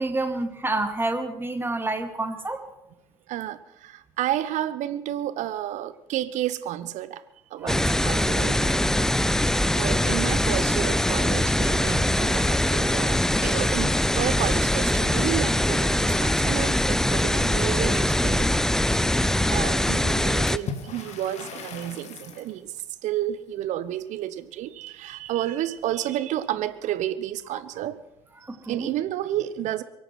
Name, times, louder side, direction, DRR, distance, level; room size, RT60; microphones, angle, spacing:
voice 1, 0.0-2.7 7.6-8.1 28.4-28.9, right 2 dB, 15° right, 2.4 m, -29 dB
voice 2, 3.3-7.2 7.5-9.1 9.4-18.7 19.1-28.0 28.6-29.8, right 12 dB, 55° right, 1.0 m, -31 dB
sound 1, 7.7-20.6, left 1 dB, 5° left, 0.5 m, -22 dB
Water / Splash splatter, 20.5-22.6, left 5 dB, 50° left, 2.3 m, -38 dB
23.5 x 8.7 x 6.1 m
hypercardioid pair, 60°, 15 cm